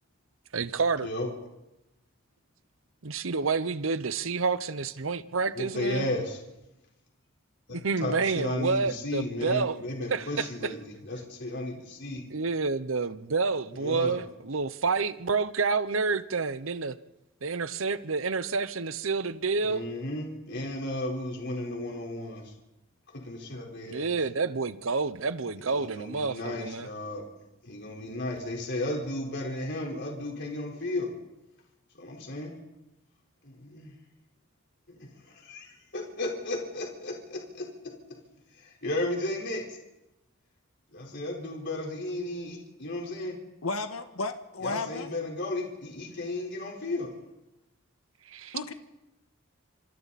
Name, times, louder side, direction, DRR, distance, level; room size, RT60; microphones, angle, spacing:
voice 1, 0.5-1.1 3.0-6.1 7.7-9.8 10.1-10.7 12.3-17.0 17.4-19.9 23.8-26.9 48.3-48.7, right 4 dB, 70° right, 0.9 m, -29 dB
voice 2, 5.5-6.4 7.7-12.2 13.7-14.2 19.7-22.5 23.1-24.1 25.7-27.2 27.6-31.1 31.9-32.5 33.4-34.0 34.9-37.7 38.5-39.8 40.9-43.4 44.6-47.1, left 1 dB, 55° left, 4.4 m, -34 dB
voice 3, 43.6-45.1 48.5-48.7, left 3 dB, 85° left, 1.6 m, -33 dB
29.0 x 26.5 x 4.2 m
head